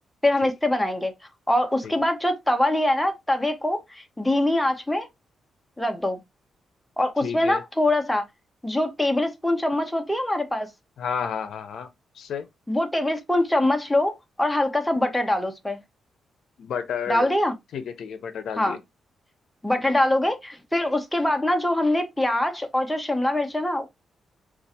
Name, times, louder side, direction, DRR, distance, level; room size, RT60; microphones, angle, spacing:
voice 1, 0.2-1.1 1.5-5.1 5.8-6.2 7.0-8.2 8.6-10.7 12.7-15.8 17.1-17.5 18.6-18.8 19.6-23.9, left 1 dB, 5° left, 0.5 m, -23 dB
voice 2, 7.2-7.6 11.0-11.9 12.2-12.4 16.6-17.3 17.7-18.8, left 7 dB, 65° left, 0.6 m, -31 dB
4.4 x 2.4 x 2.8 m
wide cardioid pair, 160°, 0 cm